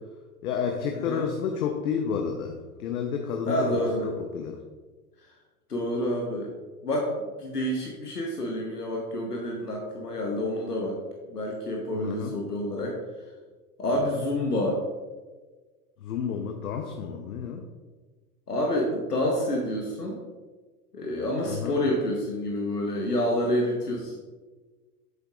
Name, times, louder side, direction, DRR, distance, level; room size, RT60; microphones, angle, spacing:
voice 1, 0.4-4.6 11.9-12.3 13.9-14.0 16.0-17.6 21.4-21.8, left 7 dB, 70° left, 4 dB, 1.0 m, -31 dB
voice 2, 3.5-4.1 5.7-6.5 6.8-7.1 7.4-11.0 11.3-12.9 13.8-14.8 18.5-20.2 20.9-24.1, left 1 dB, 90° left, -1 dB, 1.2 m, -28 dB
8.9 x 7.5 x 2.5 m, 1.3 s
figure-of-eight pair, 85°, 46 cm